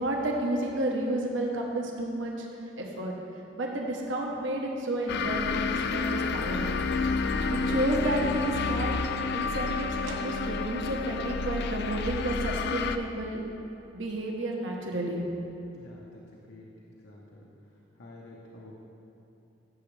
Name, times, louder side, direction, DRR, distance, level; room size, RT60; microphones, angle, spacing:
voice 1, 0.0-2.5 2.8-3.1 3.5-6.7 7.3-9.0 9.3-13.4 13.9-15.2, right 1 dB, 75° right, 0 dB, 1.1 m, -31 dB
sound 1, 5.1-13.0, left 4 dB, 55° left, 0.4 m, -30 dB
voice 2, 15.7-16.2 16.5-16.7 17.0-17.5 18.0-18.7, left 2 dB, 75° left, -4 dB, 1.1 m, -49 dB
16.0 x 7.2 x 3.3 m, 2.9 s
head